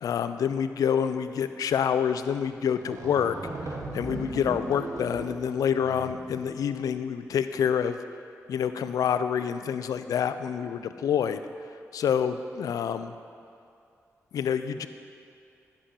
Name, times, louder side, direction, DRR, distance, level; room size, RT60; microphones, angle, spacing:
voice 1, 0.0-3.4 3.9-8.0 8.5-11.4 11.9-13.1 14.3-14.9, left 8 dB, 80° left, 11 dB, 0.4 m, -27 dB
sound 1, 2.5-2.6 2.8-6.6, right 2 dB, 60° right, 1.3 m, -38 dB
10.0 x 7.1 x 4.3 m, 2.5 s
cardioid pair, 50°, 6 cm